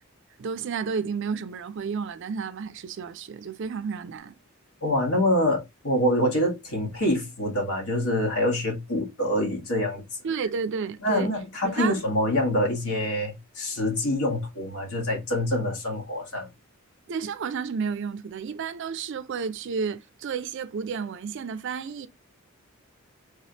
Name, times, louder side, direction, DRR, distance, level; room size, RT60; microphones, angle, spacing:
voice 1, 0.4-4.3 10.2-11.3 11.6-12.0 17.1-22.1, right 5 dB, 55° right, 0.4 m, -31 dB
voice 2, 4.8-10.0 11.0-16.5, left 1 dB, 75° left, 1.5 m, -25 dB
3.4 x 3.2 x 2.8 m
head